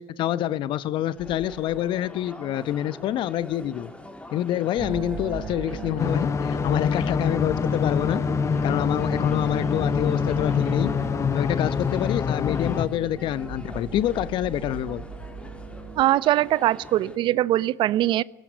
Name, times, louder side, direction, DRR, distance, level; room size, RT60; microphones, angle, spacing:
voice 1, 0.0-3.9 4.3-8.2 8.6-10.9 11.3-15.0, left 12 dB, 55° left, 1.0 m, -27 dB
sound 1, 1.1-17.2, left 1 dB, 10° left, 3.6 m, -44 dB
sound 2, 4.8-16.0, right 5 dB, 30° right, 3.6 m, -37 dB
sound 3, 6.0-12.9, left 6 dB, 30° left, 0.8 m, -25 dB
voice 2, 16.0-18.2, right 14 dB, 55° right, 0.9 m, -21 dB
18.5 x 18.0 x 9.4 m
hypercardioid pair, 70°, 10 cm